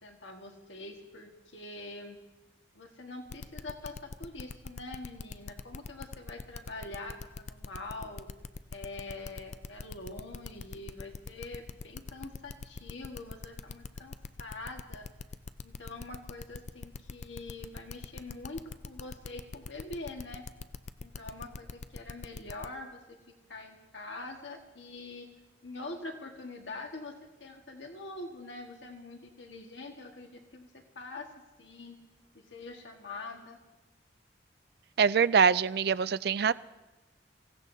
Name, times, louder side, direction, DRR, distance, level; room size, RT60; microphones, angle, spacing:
voice 1, 0.0-2.2 2.7-8.3 8.7-15.1 15.6-20.4 21.0-23.2 23.5-25.3 25.6-31.3 31.6-32.0 32.3-33.6, left 2 dB, 90° left, 2 dB, 1.7 m, -44 dB
sound 1, 3.3-22.7, left 4 dB, 40° left, 0.4 m, -42 dB
voice 2, 35.0-36.5, right 6 dB, 60° right, 17 dB, 0.4 m, -24 dB
26.0 x 16.0 x 2.8 m, 1.1 s
head